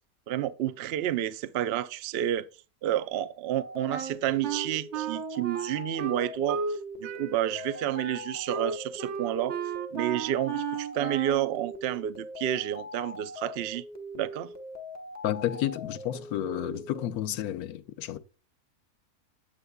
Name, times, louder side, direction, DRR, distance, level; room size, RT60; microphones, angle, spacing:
voice 1, 0.3-2.5 2.8-6.6 7.0-9.6 9.9-13.8 14.1-14.5, right 12 dB, 80° right, 0.5 m, -30 dB
sound 1, 3.5-17.1, left 1 dB, 15° left, 0.8 m, -42 dB
Wind instrument woodwind instrument, 3.9-6.8 7.0-11.5, right 7 dB, 60° right, 0.9 m, -34 dB
voice 2, 15.2-18.2, left 12 dB, 75° left, 1.1 m, -31 dB
8.8 x 8.5 x 2.2 m
omnidirectional pair, 1.6 m